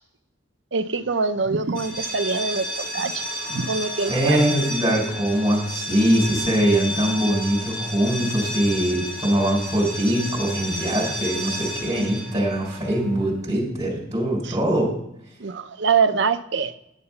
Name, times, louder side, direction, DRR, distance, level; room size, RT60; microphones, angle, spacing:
voice 1, 0.7-4.4 14.4-14.6 15.4-16.7, right 5 dB, 60° right, 9 dB, 0.7 m, -24 dB
sound 1, 1.7-13.4, equal, 40° left, 2.6 m, -32 dB
voice 2, 4.1-14.9, right 1 dB, 15° right, -3 dB, 3.9 m, -22 dB
10.5 x 6.9 x 5.6 m, 0.77 s
head